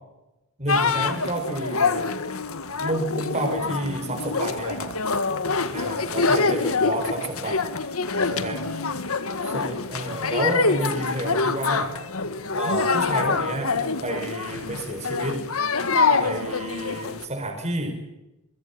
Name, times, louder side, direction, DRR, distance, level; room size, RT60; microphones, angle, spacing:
voice 1, 0.6-2.1 2.8-4.9 5.7-7.6 8.2-8.6 8.9-9.0 9.4-11.9 12.5-13.7 14.0-15.4 16.1-18.1, right 1 dB, 30° right, 2 dB, 5.4 m, -30 dB
sound 1, 0.7-17.2, left 4 dB, 80° left, 1.8 m, -25 dB
23.5 x 22.5 x 7.5 m, 0.97 s
head